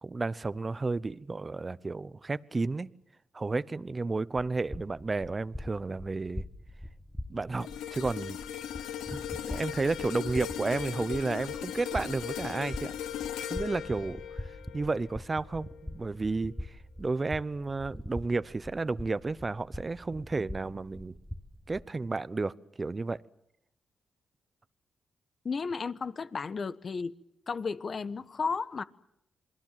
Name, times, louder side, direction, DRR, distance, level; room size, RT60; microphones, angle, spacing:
voice 1, 0.0-2.9 3.3-6.4 7.3-8.4 9.1-12.9 13.5-21.1 21.7-23.2, right 3 dB, 35° right, 0.9 m, -32 dB
sound 1, 4.4-21.8, left 1 dB, 5° left, 1.7 m, -43 dB
sound 2, 7.6-16.0 16.4-16.6, left 10 dB, 90° left, 1.0 m, -38 dB
voice 2, 25.4-27.1 27.5-28.8, left 5 dB, 50° left, 1.2 m, -33 dB
27.5 x 21.0 x 7.6 m
supercardioid pair, 55°, 0 cm